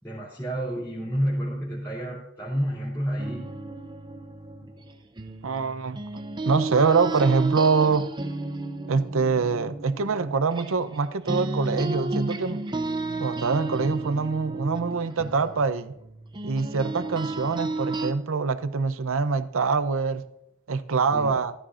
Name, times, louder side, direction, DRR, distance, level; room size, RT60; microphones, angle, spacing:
voice 1, 0.0-3.5 4.7-4.8 21.1-21.3, equal, 10° left, -8 dB, 2.9 m, -30 dB
sound 1, 3.2-11.0 11.3-18.1, right 2 dB, 20° right, 0.7 m, -33 dB
voice 2, 5.4-6.0 6.4-8.1 8.9-12.6 13.2-15.9 16.4-20.2 20.7-21.5, right 4 dB, 65° right, 13 dB, 0.7 m, -24 dB
15.5 x 13.0 x 2.5 m, 0.80 s
head